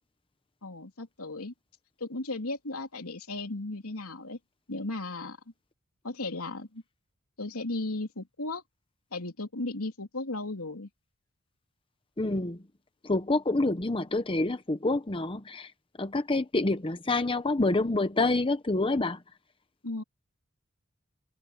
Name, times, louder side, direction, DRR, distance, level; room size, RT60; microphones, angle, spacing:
voice 1, 0.6-1.5 2.0-4.4 4.7-5.4 6.0-6.8 7.4-8.6 9.1-10.9 19.8-20.0, left 2 dB, 90° left, 3.2 m, -35 dB
voice 2, 12.2-12.6 13.0-15.7 16.0-19.2, left 2 dB, 25° left, 0.9 m, -27 dB
head